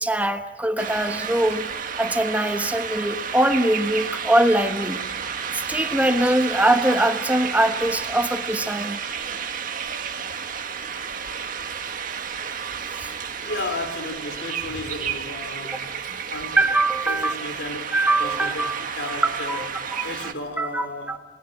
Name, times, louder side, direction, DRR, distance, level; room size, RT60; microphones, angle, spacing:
voice 1, 0.0-1.7 2.0-5.0 5.5-9.0 12.9-13.1 16.6-17.3 17.9-19.2 19.5-20.2 20.6-21.2, right 1 dB, 10° right, 7 dB, 1.2 m, -22 dB
sound 1, 0.8-20.3, right 7 dB, 50° right, 1.7 m, -31 dB
voice 2, 13.4-15.9 16.3-16.6 17.1-19.6 20.0-21.2, left 2 dB, 80° left, 7 dB, 3.7 m, -33 dB
28.5 x 19.0 x 9.1 m, 1.3 s
head